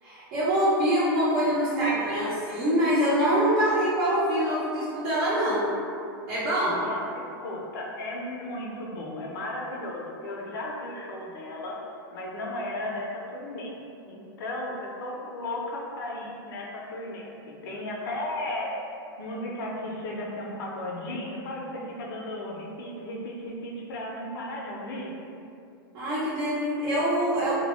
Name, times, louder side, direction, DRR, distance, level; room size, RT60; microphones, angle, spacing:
voice 1, 0.0-5.6 6.3-6.8 25.9-27.5, equal, 45° right, -12 dB, 0.7 m, -24 dB
voice 2, 6.7-11.8 12.1-13.7 14.0-18.7 19.2-25.2, left 1 dB, 70° left, -3 dB, 0.5 m, -35 dB
2.1 x 2.0 x 3.0 m, 2.5 s
supercardioid pair, 135°, 12 cm